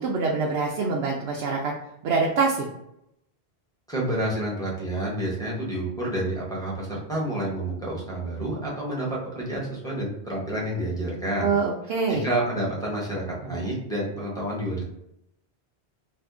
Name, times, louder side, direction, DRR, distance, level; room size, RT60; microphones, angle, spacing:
voice 1, 0.0-1.7 2.0-2.7 11.4-12.2, right 4 dB, 75° right, -1 dB, 0.8 m, -25 dB
voice 2, 3.9-11.5 12.1-14.8, right 1 dB, 5° left, -5 dB, 0.8 m, -29 dB
2.6 x 2.5 x 3.6 m, 0.79 s
omnidirectional pair, 1.1 m